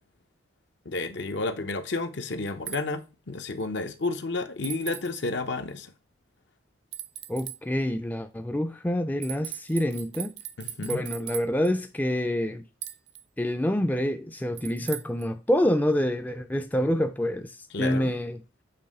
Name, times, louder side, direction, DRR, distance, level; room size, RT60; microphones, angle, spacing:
voice 1, 0.9-5.9 10.6-11.0 17.7-18.1, left 3 dB, 65° left, 0.7 m, -31 dB
sound 1, 2.7-2.8 4.6-5.2 6.9-7.6 9.2-11.7 12.8-13.2 14.6-15.3, right 12 dB, 60° right, 0.5 m, -38 dB
voice 2, 7.3-10.4 10.8-12.6 13.4-17.5 17.8-18.4, left 1 dB, 10° left, 0.4 m, -27 dB
6.9 x 3.1 x 5.3 m
head